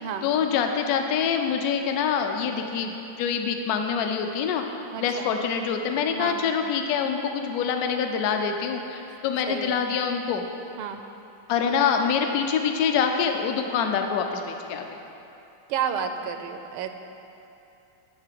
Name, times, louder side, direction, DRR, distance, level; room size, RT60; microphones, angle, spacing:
voice 1, 0.2-4.6 5.0-10.4 11.5-15.0, left 6 dB, 70° left, 5 dB, 0.9 m, -25 dB
voice 2, 4.9-5.3 6.1-6.4 9.5-9.8 10.8-11.0 15.7-16.9, right 7 dB, 85° right, 7 dB, 1.5 m, -31 dB
11.5 x 3.8 x 7.5 m, 2.8 s
omnidirectional pair, 2.3 m